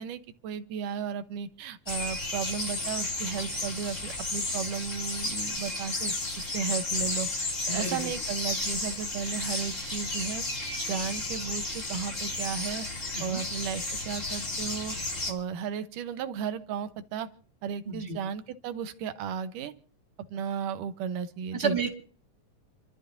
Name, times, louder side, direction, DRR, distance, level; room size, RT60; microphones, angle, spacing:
voice 1, 0.0-7.3 7.7-10.4 10.8-12.9 13.2-15.0 15.3-17.3 17.6-19.7 20.3-21.8, right 7 dB, 90° right, 10 dB, 2.6 m, -34 dB
sound 1, 1.9-15.3, left 2 dB, 25° left, 3.0 m, -33 dB
voice 2, 7.7-8.1 13.1-13.4 17.8-18.2 21.5-21.9, right 4 dB, 20° right, 2 dB, 3.4 m, -31 dB
28.5 x 13.5 x 2.7 m, 0.44 s
omnidirectional pair, 3.6 m